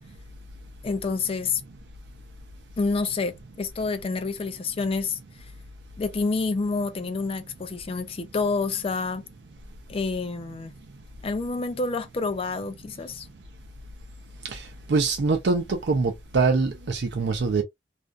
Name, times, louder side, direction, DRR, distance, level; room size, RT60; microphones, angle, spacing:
voice 1, 0.8-1.6 2.8-5.2 6.0-9.2 9.9-10.7 11.2-13.3, left 4 dB, 30° left, 0.4 m, -28 dB
voice 2, 14.4-17.6, right 4 dB, 65° right, 0.5 m, -24 dB
2.4 x 2.2 x 2.3 m
head